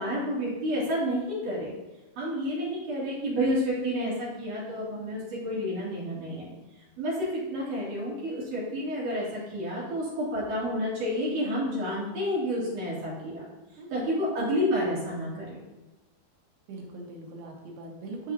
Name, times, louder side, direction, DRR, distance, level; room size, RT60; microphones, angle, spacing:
voice 1, 0.0-1.7 2.2-6.5 7.0-13.4 13.9-15.6, equal, 55° right, -8 dB, 3.8 m, -30 dB
voice 2, 16.7-18.3, right 3 dB, 80° right, 0 dB, 3.1 m, -40 dB
12.5 x 4.2 x 2.7 m, 1.1 s
omnidirectional pair, 4.5 m